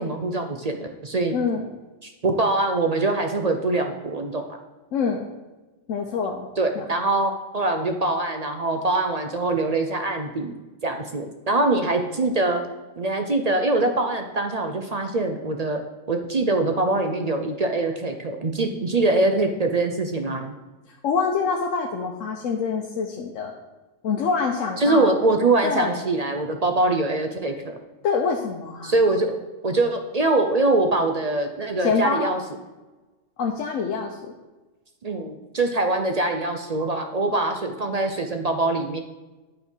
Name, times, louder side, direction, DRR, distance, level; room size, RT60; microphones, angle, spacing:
voice 1, 0.0-1.3 2.0-4.6 6.6-10.5 10.8-12.6 13.0-15.8 16.1-20.5 24.8-27.8 28.8-29.4 29.6-32.4 35.0-39.0, right 2 dB, 45° right, 5 dB, 0.5 m, -23 dB
voice 2, 1.3-1.7 4.9-5.3 5.9-6.5 6.7-6.8 21.0-23.5 24.0-25.1 25.6-26.0 28.0-28.9 31.8-32.4 33.4-34.3, left 5 dB, 85° left, 1 dB, 1.1 m, -25 dB
9.4 x 4.4 x 5.5 m, 1.1 s
omnidirectional pair, 1.3 m